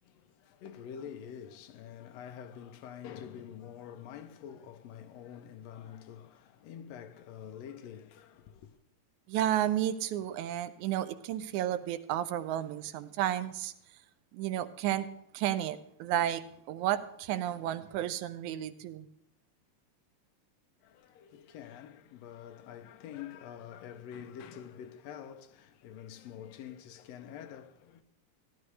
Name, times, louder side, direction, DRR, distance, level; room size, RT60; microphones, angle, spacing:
voice 1, 0.0-8.8 20.8-28.0, left 9 dB, 75° left, 1.7 m, -47 dB
voice 2, 9.3-13.7 14.3-15.1 15.3-19.1, right 12 dB, 85° right, 2.1 m, -32 dB
15.5 x 11.0 x 3.2 m
omnidirectional pair, 3.4 m